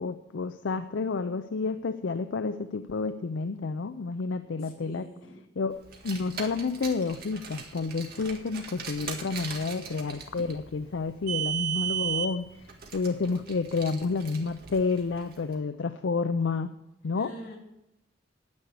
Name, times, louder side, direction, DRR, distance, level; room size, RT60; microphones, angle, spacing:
voice 1, 0.0-5.1 5.6-5.8 6.0-12.5 12.9-16.7 17.0-17.3, left 4 dB, 90° left, 10 dB, 0.5 m, -30 dB
voice 2, 4.6-5.4 17.1-17.6, right 1 dB, 55° left, -2 dB, 3.4 m, -45 dB
Car, 5.9-15.4, right 9 dB, 55° right, 1.8 m, -36 dB
9.7 x 9.5 x 6.8 m, 0.89 s
head